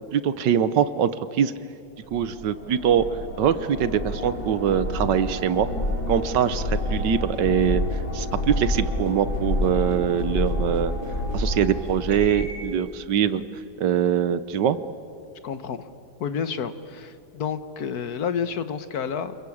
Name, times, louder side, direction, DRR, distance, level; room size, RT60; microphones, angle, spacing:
voice 1, 0.1-1.5 2.1-3.0 3.4-5.7 6.1-7.8 8.1-10.9 11.3-13.4 13.8-14.8, right 9 dB, 65° right, 14 dB, 1.5 m, -23 dB
sound 1, 2.1-12.7, left 1 dB, 75° left, 3.9 m, -28 dB
voice 2, 15.4-15.9 16.2-19.4, left 7 dB, 55° left, 11 dB, 1.5 m, -30 dB
28.5 x 21.5 x 8.6 m, 2.4 s
omnidirectional pair, 2.1 m